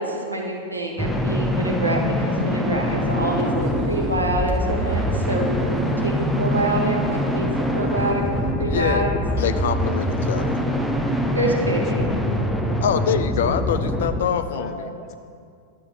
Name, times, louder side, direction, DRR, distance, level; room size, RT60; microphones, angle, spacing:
voice 1, 0.0-8.2 8.6-9.1 11.3-12.1, right 1 dB, 85° right, -1 dB, 1.2 m, -26 dB
sound 1, 1.0-14.2, equal, ahead, 0.7 m, -24 dB
sound 2, 3.2-8.5, right 3 dB, 20° right, 1.2 m, -43 dB
voice 2, 8.6-9.1 9.4-10.6 12.8-14.8, left 8 dB, 60° left, 11 dB, 0.4 m, -25 dB
voice 3, 10.6-10.9 11.7-13.4 14.5-15.1, left 2 dB, 35° left, 3 dB, 0.9 m, -39 dB
12.5 x 7.9 x 2.9 m, 2.3 s
figure-of-eight pair, 90°, 0 cm